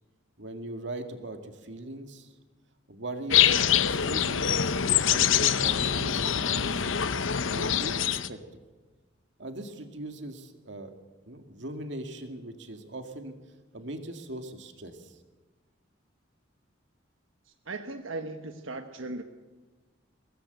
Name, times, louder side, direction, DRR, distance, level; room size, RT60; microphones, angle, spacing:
voice 1, 0.4-2.3 2.9-4.7 5.0-6.9 7.5-8.4 9.4-10.9 11.3-13.3 13.7-15.2, right 1 dB, 60° right, 6 dB, 2.2 m, -40 dB
sound 1, 3.3-8.3, left 9 dB, 80° left, 0.9 m, -24 dB
voice 2, 17.7-19.2, right 2 dB, 90° right, 6 dB, 1.3 m, -37 dB
23.0 x 18.0 x 8.0 m, 1.3 s
head